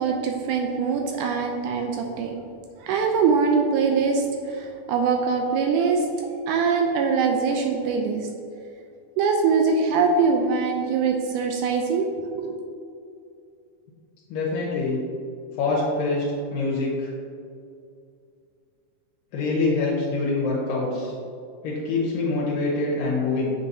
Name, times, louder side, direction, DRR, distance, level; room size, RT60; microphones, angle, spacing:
voice 1, 0.0-2.4 2.8-6.1 6.5-8.3 9.2-12.1 12.4-12.6, right 5 dB, 80° right, 2 dB, 1.9 m, -23 dB
voice 2, 14.3-15.0 15.6-16.2 16.5-17.1 19.3-21.1 21.6-23.5, left 3 dB, 85° left, -5 dB, 2.6 m, -25 dB
8.0 x 5.6 x 2.7 m, 2.4 s
omnidirectional pair, 3.9 m